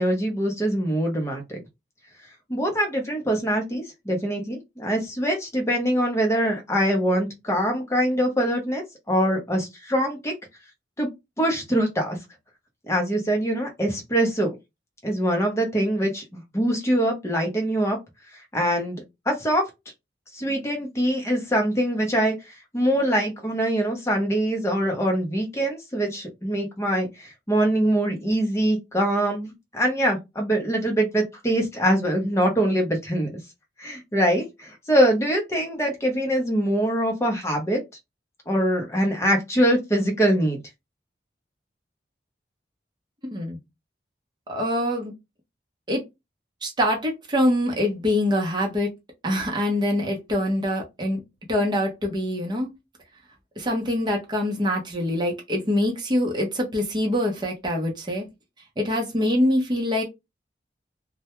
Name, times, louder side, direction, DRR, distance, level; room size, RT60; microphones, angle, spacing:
voice 1, 0.0-1.6 2.5-10.3 11.0-11.1 11.4-12.2 12.9-14.5 15.0-18.0 18.5-19.6 20.3-22.4 22.7-33.3 33.8-37.8 38.5-40.6, right 1 dB, 15° left, 0.7 m, -23 dB
voice 2, 44.5-45.1 45.9-46.0 46.6-48.9 49.2-51.2 51.5-52.7 53.6-58.3 58.8-60.0, left 1 dB, 25° right, 0.7 m, -24 dB
2.1 x 2.1 x 2.9 m
head